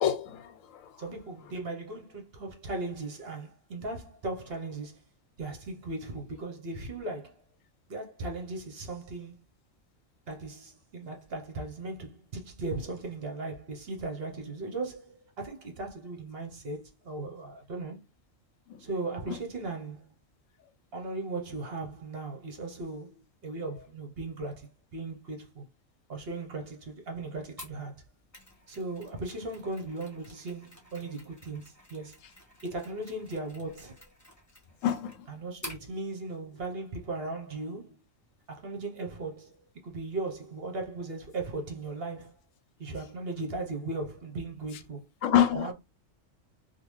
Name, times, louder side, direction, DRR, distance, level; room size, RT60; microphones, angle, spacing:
voice 1, 0.0-1.0 18.7-18.8 19.3-19.4 34.8-35.2 45.2-45.7, left 10 dB, 75° left, 0.9 m, -27 dB
voice 2, 1.0-5.0 5.4-7.4 7.9-9.4 10.3-18.0 18.8-20.1 20.9-25.6 26.1-28.0 28.7-32.2 32.6-34.0 35.3-38.0 38.5-42.3 42.8-45.1 45.5-45.7, right 2 dB, 50° right, 1.0 m, -37 dB
Mechanisms, 27.6-35.9, left 1 dB, 15° left, 1.2 m, -50 dB
3.6 x 2.4 x 3.1 m
omnidirectional pair, 1.4 m